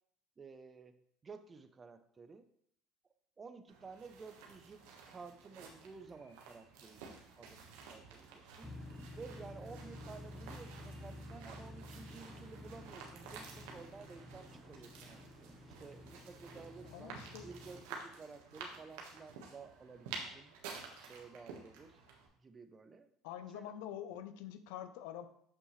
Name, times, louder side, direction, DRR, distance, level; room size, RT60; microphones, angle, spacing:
voice 1, 0.4-2.5 3.4-8.8 9.2-15.2 15.8-20.5 21.0-22.0 22.4-23.1 23.5-23.7, right 4 dB, 25° right, 10 dB, 0.7 m, -53 dB
sound 1, 3.7-22.3, right 5 dB, 85° right, 1.4 m, -52 dB
sound 2, 8.6-17.8, left 1 dB, 5° left, 1.0 m, -51 dB
voice 2, 16.8-17.5 23.2-25.3, left 10 dB, 80° left, 11 dB, 0.6 m, -46 dB
7.4 x 5.8 x 3.2 m, 0.68 s
supercardioid pair, 110°, 0 cm